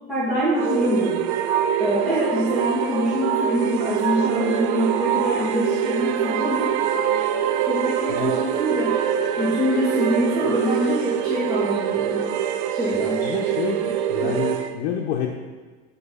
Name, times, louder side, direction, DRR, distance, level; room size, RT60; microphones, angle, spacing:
voice 1, 0.1-1.2 1.8-6.7 7.7-8.9 9.4-12.2 12.7-13.3 14.2-14.3, equal, ahead, -12 dB, 2.4 m, -24 dB
sound 1, 0.5-14.7, right 9 dB, 85° right, 0.7 m, -24 dB
sound 2, 3.5-11.2, right 5 dB, 50° right, 0.9 m, -35 dB
voice 2, 13.2-13.8 14.1-15.3, left 9 dB, 80° left, -2 dB, 1.0 m, -28 dB
10.5 x 4.0 x 5.5 m, 1.4 s
cardioid pair, 160°, 32 cm